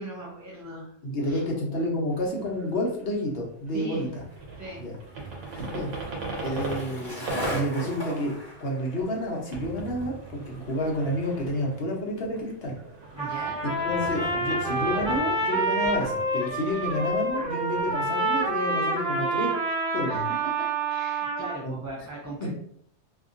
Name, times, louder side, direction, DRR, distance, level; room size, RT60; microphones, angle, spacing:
voice 1, 0.0-0.9 1.2-1.4 3.7-4.1 4.6-4.8 5.3-5.4 13.2-13.6 20.1-22.5, right 1 dB, 30° right, -5 dB, 0.3 m, -39 dB
voice 2, 1.0-4.2 4.8-5.0 5.5-5.9 6.4-8.3 8.6-12.8 13.6-19.5 19.9-20.2 21.6-21.8, left 1 dB, 60° left, -1 dB, 0.9 m, -30 dB
sound 1, 2.1-3.4 3.7-18.5, right 3 dB, 80° right, 1.1 m, -40 dB
Skateboard, 4.2-14.7, right 1 dB, 20° left, 1.2 m, -40 dB
Trumpet, 13.2-21.6, right 2 dB, 5° right, 1.0 m, -28 dB
2.8 x 2.6 x 2.5 m, 0.66 s
omnidirectional pair, 1.2 m